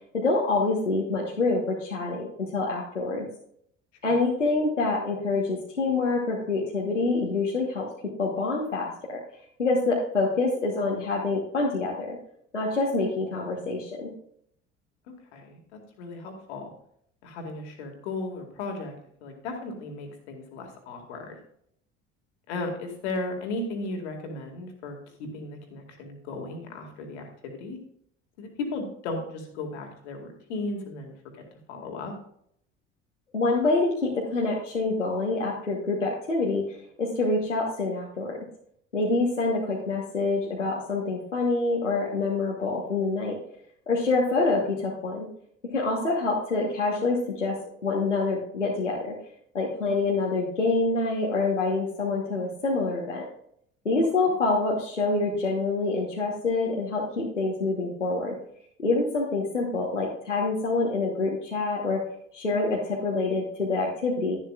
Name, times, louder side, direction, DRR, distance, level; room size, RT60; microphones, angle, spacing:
voice 1, 0.2-3.3 4.0-7.9 8.2-9.2 9.6-12.2 12.5-14.1 33.3-38.4 38.9-43.4 43.9-45.3 45.7-47.5 47.8-49.1 49.5-53.3 53.8-58.4 58.8-62.0 62.3-64.4, left 3 dB, 90° left, -4 dB, 1.3 m, -26 dB
voice 2, 15.1-16.7 17.2-18.9 19.2-21.4 22.5-27.8 28.4-31.1 31.7-32.1 54.2-54.3, left 2 dB, 65° left, 3 dB, 2.1 m, -36 dB
12.0 x 11.0 x 2.4 m, 0.68 s
figure-of-eight pair, 60°, 36 cm